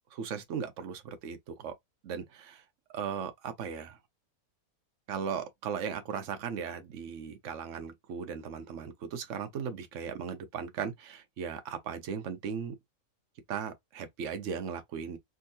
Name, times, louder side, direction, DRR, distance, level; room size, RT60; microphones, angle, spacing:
voice 1, 0.1-1.7 2.0-2.6 2.9-4.0 5.1-12.7 13.5-15.2, right 7 dB, 60° right, 1.0 m, -37 dB
3.6 x 2.8 x 2.7 m
omnidirectional pair, 1.6 m